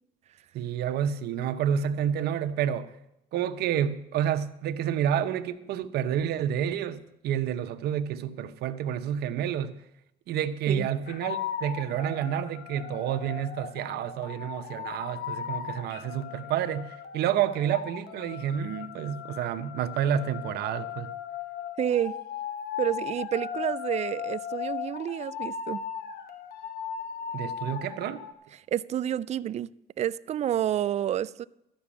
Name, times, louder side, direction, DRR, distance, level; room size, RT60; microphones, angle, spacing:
voice 1, 0.5-2.9 3.3-7.0 7.2-9.7 10.3-21.1 27.3-28.2, right 9 dB, 70° right, 0.8 m, -29 dB
sound 1, 11.1-28.3, left 8 dB, 65° left, 1.1 m, -37 dB
voice 2, 21.8-22.2 22.8-25.8 28.7-29.7 30.0-31.5, right 10 dB, 40° right, 0.4 m, -29 dB
13.0 x 6.1 x 8.6 m
cardioid pair, 110°, 17 cm